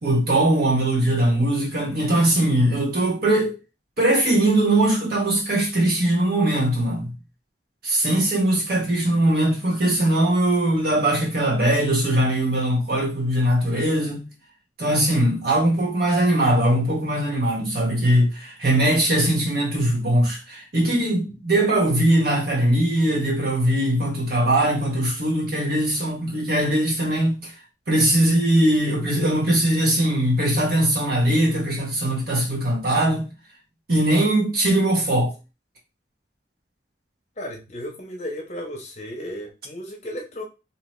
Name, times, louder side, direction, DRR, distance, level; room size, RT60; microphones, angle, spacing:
voice 1, 0.0-3.5 4.0-7.1 7.8-14.3 14.8-27.6 27.9-33.2 33.9-35.3, right 1 dB, 55° right, 1.3 m, -21 dB
voice 2, 37.4-40.4, equal, 40° left, 0.8 m, -34 dB
2.9 x 2.8 x 3.1 m
head